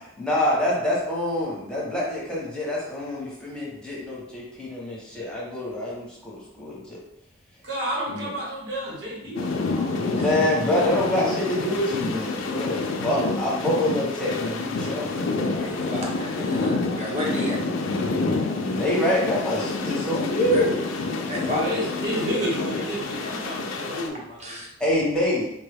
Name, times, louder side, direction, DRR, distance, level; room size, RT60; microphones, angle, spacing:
voice 1, 0.2-7.0 8.1-8.3 10.0-15.1 18.6-20.8 24.8-25.5, left 1 dB, 5° left, -6 dB, 0.8 m, -26 dB
voice 2, 7.6-9.9 21.4-24.5, equal, 70° right, -5 dB, 1.1 m, -30 dB
sound 1, 9.3-24.1, left 3 dB, 85° left, 0.4 m, -28 dB
voice 3, 15.5-17.6 20.5-20.6 21.3-21.8 22.2-22.3 24.4-24.7, left 1 dB, 35° right, -3 dB, 0.8 m, -32 dB
4.2 x 2.2 x 3.3 m, 0.85 s
head